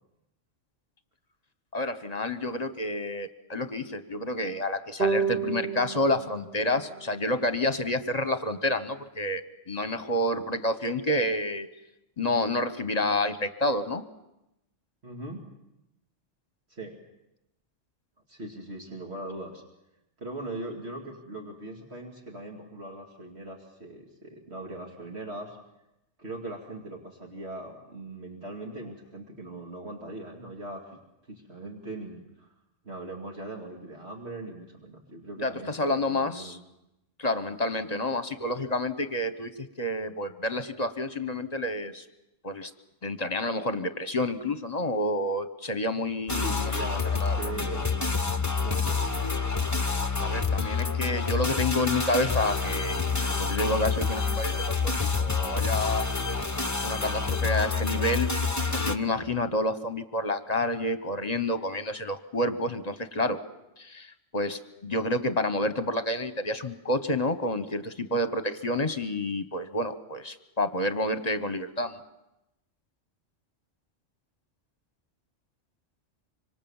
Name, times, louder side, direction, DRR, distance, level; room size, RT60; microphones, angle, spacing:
voice 1, 1.7-11.7 12.2-14.0 35.4-36.6 37.2-39.5 39.8-42.0 42.4-42.7 43.0-46.7 47.2-47.4 50.2-56.1 56.8-58.3 58.7-63.4 63.8-72.0, left 1 dB, 35° left, 10 dB, 1.2 m, -29 dB
sound 1, 5.0-8.3, right 6 dB, 40° right, 2.7 m, -32 dB
voice 2, 15.0-15.4 16.7-17.0 18.3-19.6 20.2-25.6 26.2-30.8 31.3-32.5 32.8-36.6 46.4-48.0 48.6-49.5, right 2 dB, 60° right, -1 dB, 2.8 m, -40 dB
sound 2, 46.3-59.0, left 4 dB, 15° left, 0.9 m, -28 dB
25.5 x 25.0 x 7.2 m, 0.90 s
omnidirectional pair, 1.2 m